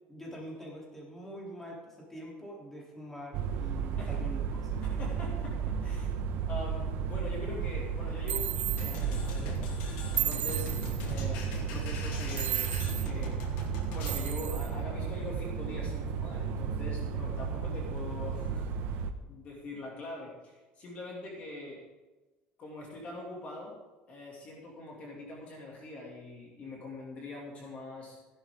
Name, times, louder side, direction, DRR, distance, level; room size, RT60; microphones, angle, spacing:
voice 1, 0.1-4.8, equal, 10° left, -4 dB, 3.5 m, -45 dB
sound 1, 3.3-19.1, right 6 dB, 65° right, 0.9 m, -33 dB
voice 2, 4.8-6.1 6.5-10.7 11.0-21.8 22.6-23.8 24.1-28.2, left 2 dB, 40° left, -2 dB, 2.6 m, -43 dB
sound 2, 8.3-9.0 10.2-11.0 12.4-13.1 14.1-14.7, right 12 dB, 45° right, 0.3 m, -34 dB
sound 3, 8.8-14.3, left 4 dB, 75° left, 2.5 m, -44 dB
15.5 x 11.0 x 3.8 m, 1.1 s
cardioid pair, 155°, 4 cm